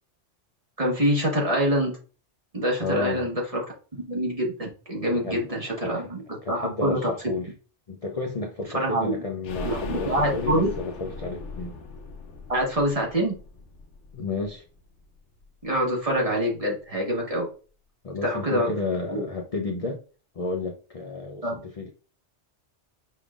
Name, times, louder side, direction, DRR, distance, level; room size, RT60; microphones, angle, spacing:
voice 1, 0.8-1.9 2.5-3.6 4.1-6.2 6.5-7.1 8.7-9.2 9.6-10.7 12.5-13.4 15.6-17.5 18.2-18.7 19.1-19.2 21.4-21.6, equal, 30° right, 1.3 m, -25 dB
voice 2, 2.8-3.3 5.1-6.1 6.4-7.5 7.9-11.8 14.1-14.6 18.0-20.0 20.3-21.9, left 3 dB, 40° left, 0.5 m, -32 dB
sound 1, 9.4-15.1 15.4-15.5 15.8-15.9, left 4 dB, 75° left, 1.0 m, -38 dB
5.4 x 3.5 x 2.4 m
omnidirectional pair, 1.2 m